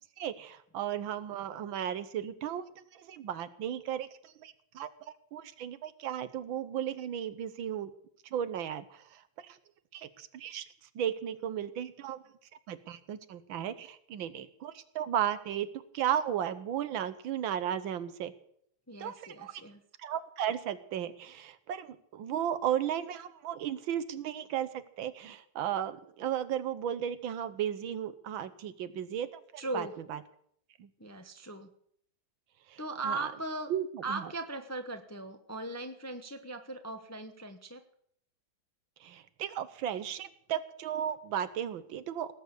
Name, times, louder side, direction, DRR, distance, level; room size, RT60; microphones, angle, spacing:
voice 1, 0.2-2.6 2.9-4.9 5.3-7.9 8.3-9.6 9.9-10.7 10.9-12.2 12.7-15.7 15.9-18.3 19.0-19.6 20.0-29.3 29.5-30.2 30.8-30.9 32.7-33.3 33.7-34.2 39.0-42.3, right 10 dB, 80° right, 13 dB, 1.7 m, -35 dB
voice 2, 18.9-19.8 29.6-29.9 31.0-31.7 32.8-33.7 34.0-37.8, right 2 dB, 15° left, 6 dB, 0.6 m, -38 dB
18.5 x 7.3 x 8.2 m, 0.67 s
omnidirectional pair, 2.1 m